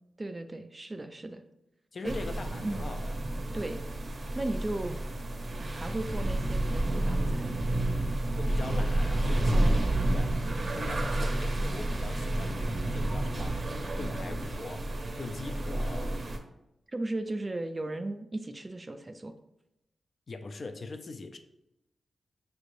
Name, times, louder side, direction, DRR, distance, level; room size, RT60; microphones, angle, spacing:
voice 1, 0.2-1.4 2.0-2.2 2.6-2.8 3.5-3.8 4.3-5.0 5.6-7.6 9.5-9.7 16.9-19.3, right 2 dB, 20° right, 8 dB, 0.3 m, -36 dB
voice 2, 1.9-3.2 8.4-9.8 10.1-10.3 10.7-12.6 12.9-13.6 14.0-14.9 15.2-16.1 20.3-21.4, left 3 dB, 45° left, 7 dB, 0.4 m, -41 dB
sound 1, 2.0-16.4, right 1 dB, 45° right, 0.7 m, -30 dB
6.5 x 3.2 x 2.6 m, 0.87 s
wide cardioid pair, 130°, 0 cm